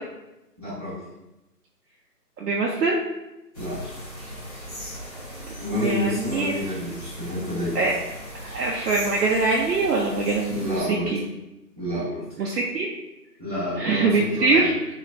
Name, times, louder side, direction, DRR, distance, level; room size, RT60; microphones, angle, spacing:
voice 1, 0.6-1.0 3.6-3.8 5.6-7.8 10.5-11.1 11.8-12.3 13.4-14.7, left 1 dB, 25° right, -12 dB, 0.7 m, -29 dB
voice 2, 2.4-3.0 5.7-6.5 7.7-7.9 8.5-11.2 12.4-12.9 13.8-14.7, right 3 dB, 75° right, -2 dB, 0.6 m, -23 dB
sound 1, 3.5-10.8, equal, 25° left, 1.0 m, -38 dB
3.0 x 2.1 x 2.5 m, 0.95 s
figure-of-eight pair, 165°, 48 cm